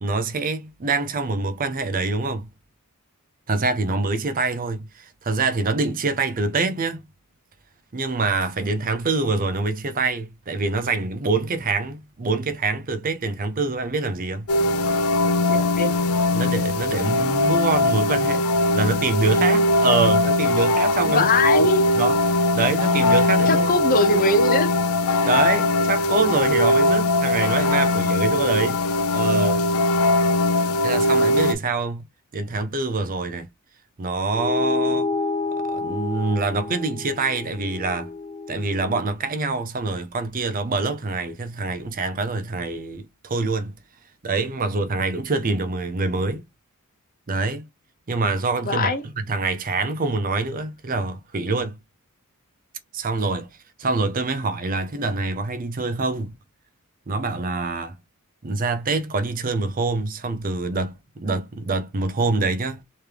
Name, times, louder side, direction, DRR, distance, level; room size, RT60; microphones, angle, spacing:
voice 1, 0.0-2.5 3.5-7.0 7.9-14.5 16.3-21.5 22.0-23.7 25.2-28.8 29.1-29.6 30.8-32.0 32.3-33.5 34.0-35.1 35.7-38.1 38.5-43.7 44.2-46.4 47.3-47.7 48.1-51.8 52.9-53.5 53.8-56.3 57.1-58.0 58.4-62.8, right 3 dB, 40° right, 0.6 m, -25 dB
sound 1, 14.5-31.5, left 1 dB, 70° left, 0.5 m, -20 dB
voice 2, 15.5-16.0 21.0-21.9 23.5-24.7 48.6-49.0, left 3 dB, 40° left, 0.8 m, -22 dB
sound 2, 34.3-39.1, left 3 dB, 25° left, 0.3 m, -29 dB
3.3 x 3.2 x 3.3 m
head